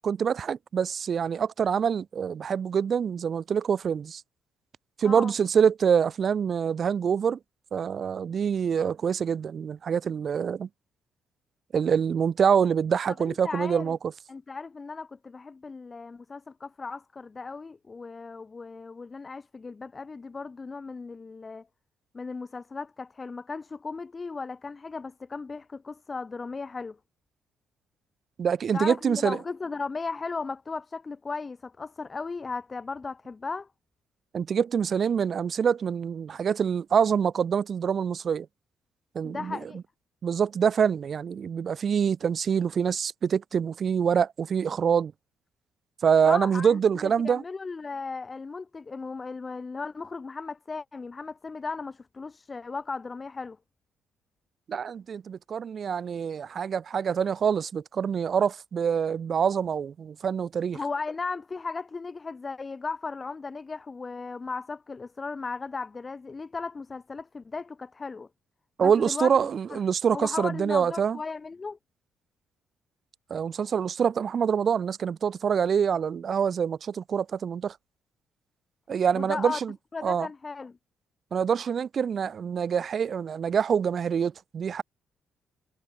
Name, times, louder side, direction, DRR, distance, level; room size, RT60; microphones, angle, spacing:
voice 1, 0.0-4.2 5.0-7.4 7.7-10.7 11.7-14.0 28.4-29.4 34.3-38.5 39.1-39.6 40.2-45.1 46.0-47.4 54.7-60.8 68.8-71.2 73.3-77.7 78.9-79.7 80.0-80.3 81.3-84.8, right 7 dB, 50° right, 1.6 m, -25 dB
voice 2, 13.2-14.0 14.3-21.7 22.1-27.0 28.7-33.7 39.2-39.8 46.3-53.6 60.7-68.3 68.8-69.3 69.7-69.8 70.1-71.8 79.1-79.6 79.9-80.8, left 4 dB, 30° left, 3.7 m, -36 dB
cardioid pair, 90°, 0 cm